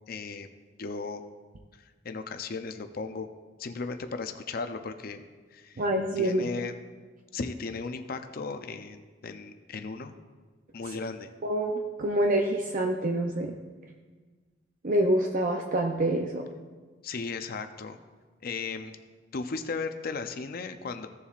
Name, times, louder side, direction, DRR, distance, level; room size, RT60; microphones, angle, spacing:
voice 1, 0.1-0.5 0.8-1.2 2.0-3.3 3.6-5.2 5.5-5.8 6.2-6.7 7.3-10.1 10.7-11.3 17.0-18.0 18.4-19.0 19.3-21.1, left 4 dB, 55° left, 8 dB, 0.6 m, -36 dB
voice 2, 5.8-6.4 11.4-13.5 14.8-16.5, right 1 dB, 45° right, 2 dB, 0.6 m, -26 dB
16.0 x 7.0 x 2.5 m, 1.4 s
head